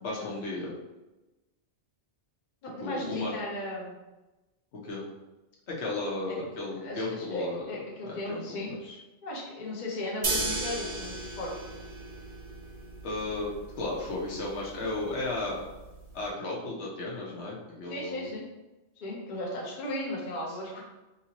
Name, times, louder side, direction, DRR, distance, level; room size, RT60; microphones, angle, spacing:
voice 1, 0.0-0.7 2.8-3.4 4.7-5.0 5.7-7.6 8.0-9.0 13.0-15.7 16.1-18.3, left 2 dB, 70° left, -4 dB, 1.0 m, -34 dB
voice 2, 2.6-4.0 6.3-6.4 6.8-8.7 9.2-11.5 17.9-18.5 19.0-20.8, left 1 dB, 50° left, -3 dB, 0.7 m, -36 dB
sound 1, 10.2-16.3, right 3 dB, 55° right, 0.8 m, -36 dB
2.9 x 2.7 x 2.8 m, 1.1 s
omnidirectional pair, 1.2 m